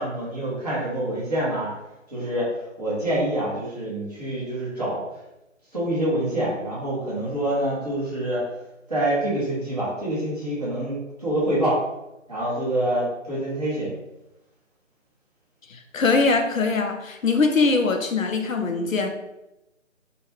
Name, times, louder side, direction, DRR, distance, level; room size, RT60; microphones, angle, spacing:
voice 1, 0.0-1.7 2.1-5.1 5.7-8.5 8.9-11.8 12.3-13.9, right 1 dB, 30° right, 1.0 m, -26 dB
voice 2, 15.7-19.1, left 4 dB, 85° left, 0.6 m, -22 dB
2.8 x 2.2 x 2.9 m
figure-of-eight pair, 155°, 39 cm